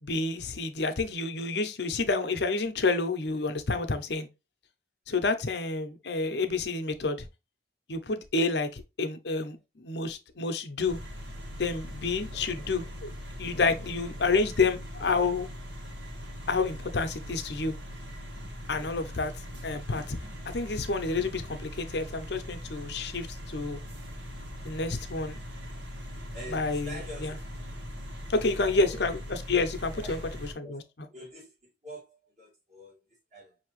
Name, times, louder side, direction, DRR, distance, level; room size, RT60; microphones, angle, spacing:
voice 1, 0.0-4.3 5.1-7.3 7.9-11.0 11.6-13.1 13.4-15.5 16.5-17.8 18.7-19.3 19.6-20.2 20.4-23.8 24.6-25.4 26.5-27.4 28.3-30.2 30.6-31.1, left 3 dB, 70° left, 0.7 m, -29 dB
sound 1, 10.9-30.5, equal, 80° right, 1.8 m, -41 dB
voice 2, 26.3-27.4 28.6-29.1 29.9-33.6, equal, 40° right, 2.4 m, -46 dB
5.7 x 2.9 x 3.0 m
head